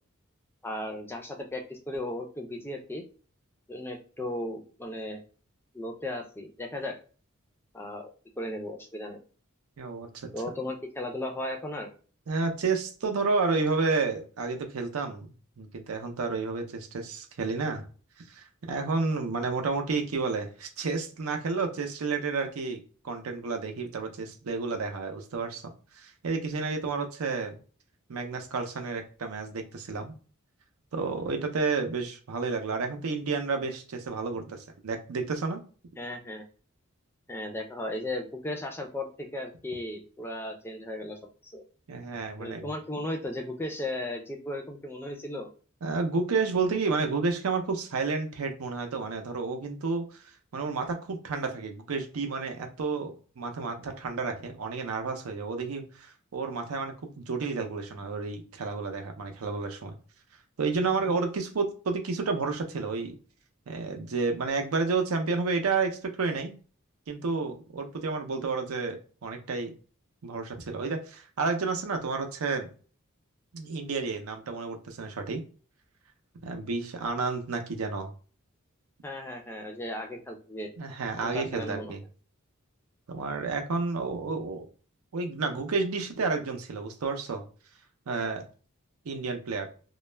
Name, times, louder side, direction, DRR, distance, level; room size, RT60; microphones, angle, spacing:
voice 1, 0.6-3.0 3.7-5.2 5.7-7.0 7.7-9.2 10.3-11.9 36.0-36.4 37.3-41.6 42.4-45.5 79.0-80.7 81.2-81.9, left 1 dB, 10° left, 2 dB, 0.4 m, -36 dB
voice 2, 9.8-10.3 12.3-15.3 15.6-17.9 18.3-22.8 23.0-25.6 26.0-27.6 28.1-30.2 30.9-35.6 41.9-42.7 45.8-50.2 50.5-60.0 60.6-63.1 63.7-66.6 67.1-69.7 70.2-72.7 73.5-75.4 76.4-78.1 80.8-82.0 83.1-84.7 85.1-87.4 88.1-88.4 89.1-89.7, right 4 dB, 85° right, 5 dB, 0.5 m, -31 dB
2.3 x 2.0 x 3.1 m, 0.39 s
head